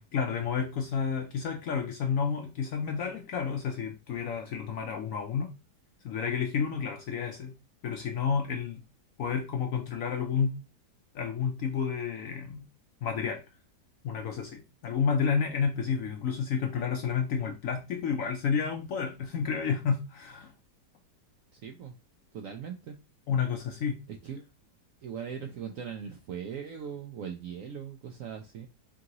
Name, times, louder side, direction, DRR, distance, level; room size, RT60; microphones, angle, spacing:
voice 1, 0.1-5.5 6.0-7.5 7.8-8.8 9.2-10.6 11.1-12.7 13.0-13.4 14.0-20.5 23.3-24.0, left 6 dB, 70° left, 0.8 m, -30 dB
voice 2, 21.5-22.0 22.3-23.0 24.1-24.4 25.0-28.7, right 7 dB, 70° right, 0.7 m, -40 dB
3.8 x 3.7 x 2.9 m
omnidirectional pair, 1.9 m